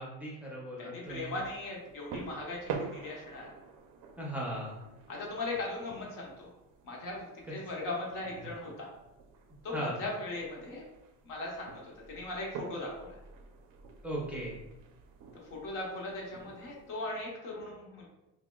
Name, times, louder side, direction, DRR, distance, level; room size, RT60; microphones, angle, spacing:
voice 1, 0.0-1.3 4.2-4.8 9.7-10.0 14.0-14.6, right 1 dB, 5° right, -5 dB, 0.6 m, -37 dB
voice 2, 0.8-3.5 5.1-6.5 6.8-8.9 9.6-10.8 11.2-13.2 15.5-18.1, left 2 dB, 55° left, -2 dB, 1.1 m, -39 dB
sound 1, 1.1-16.9, right 5 dB, 55° right, 0.5 m, -47 dB
5.7 x 2.1 x 2.3 m, 0.96 s
cardioid pair, 135°, 39 cm